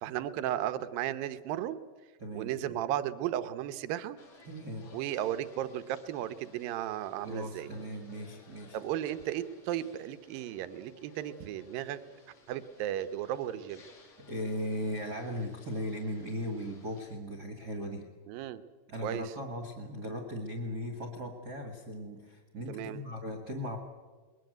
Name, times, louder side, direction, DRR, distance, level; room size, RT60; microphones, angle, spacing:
voice 1, 0.0-1.8 2.3-4.2 4.9-7.7 8.7-12.0 12.5-13.8 18.3-18.6 19.0-19.3 22.7-23.0, right 12 dB, 75° right, 12 dB, 2.3 m, -35 dB
voice 2, 2.2-2.8 4.4-4.9 7.2-8.8 14.2-18.1 18.9-23.8, equal, 35° right, 3 dB, 1.8 m, -38 dB
sound 1, 4.2-17.2, left 2 dB, 45° left, 3.3 m, -58 dB
21.5 x 21.0 x 7.9 m, 1.4 s
omnidirectional pair, 4.8 m